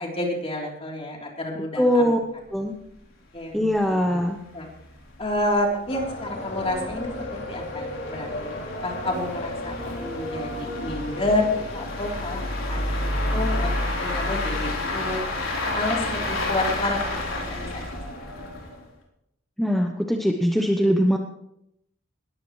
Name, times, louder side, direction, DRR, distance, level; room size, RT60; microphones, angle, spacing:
voice 1, 0.0-2.2 3.3-4.0 4.5-4.7 5.2-12.4 12.7-15.2 15.7-17.8 18.4-18.5, left 1 dB, 30° left, -1 dB, 3.7 m, -29 dB
voice 2, 1.8-2.2 2.5-2.7 3.5-4.4 19.6-21.2, equal, ahead, 2 dB, 0.9 m, -21 dB
sound 1, 2.5-2.6 2.8-2.9 3.4-3.5 3.8-3.9 4.5-18.9, left 2 dB, 85° left, 4.0 m, -30 dB
sound 2, 5.9-14.2, left 1 dB, 60° left, 2.8 m, -35 dB
20.0 x 14.5 x 3.2 m, 0.79 s
head